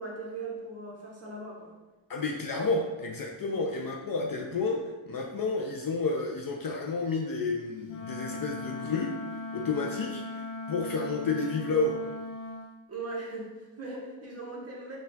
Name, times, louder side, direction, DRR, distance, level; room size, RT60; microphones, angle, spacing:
voice 1, 0.0-1.7 3.4-3.6 12.9-15.0, right 3 dB, 30° right, -4 dB, 1.0 m, -39 dB
voice 2, 2.1-9.2 9.5-12.0, left 3 dB, 45° left, 0 dB, 0.4 m, -31 dB
Wind instrument woodwind instrument, 7.8-12.7, left 2 dB, 90° left, 0.7 m, -39 dB
4.2 x 2.4 x 3.9 m, 1.1 s
wide cardioid pair, 140°, 49 cm